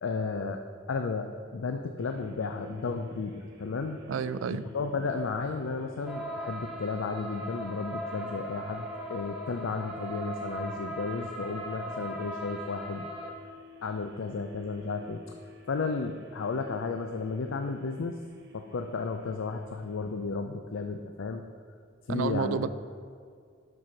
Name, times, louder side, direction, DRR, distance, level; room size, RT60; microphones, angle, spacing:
voice 1, 0.0-0.6 0.9-4.0 4.7-13.3 13.8-15.2 15.7-18.2 18.5-21.5 22.1-22.7, left 4 dB, 70° left, 6 dB, 0.4 m, -33 dB
sound 1, 2.0-20.3, left 3 dB, 55° right, 1.1 m, -52 dB
voice 2, 4.1-4.7 22.1-22.7, right 6 dB, 75° right, 14 dB, 0.4 m, -30 dB
sound 2, 6.1-13.3, right 1 dB, 5° right, 0.9 m, -39 dB
7.5 x 6.2 x 5.7 m, 2.2 s
head